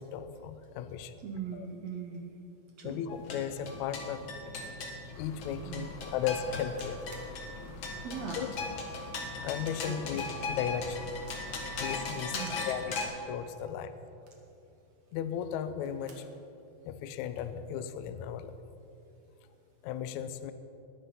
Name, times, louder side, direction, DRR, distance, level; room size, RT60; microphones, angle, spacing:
voice 1, 0.0-1.1 1.5-1.7 2.8-4.3 5.2-7.0 8.4-8.5 9.4-11.1 11.8-13.9 15.1-16.2 16.9-18.5 19.8-20.5, left 9 dB, 90° left, 11 dB, 1.6 m, -36 dB
voice 2, 1.2-2.4 2.8-3.0 5.7-5.9 8.0-8.5 9.8-10.2 11.5-11.6 12.3-12.7, right 6 dB, 80° right, 3 dB, 1.5 m, -40 dB
sound 1, 3.1-13.0, left 3 dB, 50° left, 1.5 m, -39 dB
sound 2, 5.1-12.1, left 4 dB, 75° left, 1.7 m, -50 dB
sound 3, 6.7-7.3 7.9-8.0 8.5-8.7 9.6-9.9 10.2-10.4 11.4-11.8 12.4-12.8 14.1-14.5 15.6-16.3 16.7-16.8 17.0-17.6 18.4-18.7, right 4 dB, 50° right, 2.4 m, -56 dB
20.0 x 8.8 x 5.7 m, 2.7 s
omnidirectional pair, 4.2 m